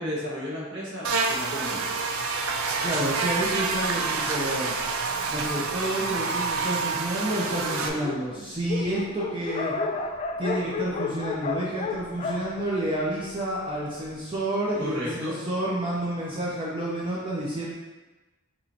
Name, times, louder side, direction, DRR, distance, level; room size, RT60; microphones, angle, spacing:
voice 1, 0.0-1.9 14.8-15.3, equal, 60° right, -7 dB, 1.5 m, -33 dB
Buzz, 1.0-7.9, right 4 dB, 90° right, 0.5 m, -28 dB
Dog, 2.8-5.8 6.5-6.6 6.9-7.0 7.1-13.5, left 4 dB, 30° left, 0.3 m, -34 dB
voice 2, 2.8-4.7 5.3-9.7 10.4-17.7, right 1 dB, 25° right, -6 dB, 0.6 m, -29 dB
5.4 x 3.1 x 2.8 m, 1.2 s
head